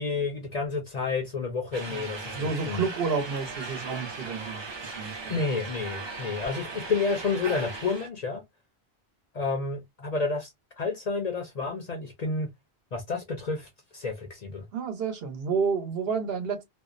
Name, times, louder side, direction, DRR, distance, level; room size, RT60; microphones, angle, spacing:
voice 1, 0.0-2.8 5.3-8.4 9.3-10.5 10.8-12.5 12.9-14.7, left 4 dB, 50° left, 0.5 m, -30 dB
sound 1, 1.7-8.1, right 3 dB, 35° right, 0.5 m, -38 dB
voice 2, 2.3-5.4 14.7-16.6, right 5 dB, 70° right, 1.0 m, -30 dB
2.5 x 2.0 x 2.4 m
omnidirectional pair, 1.1 m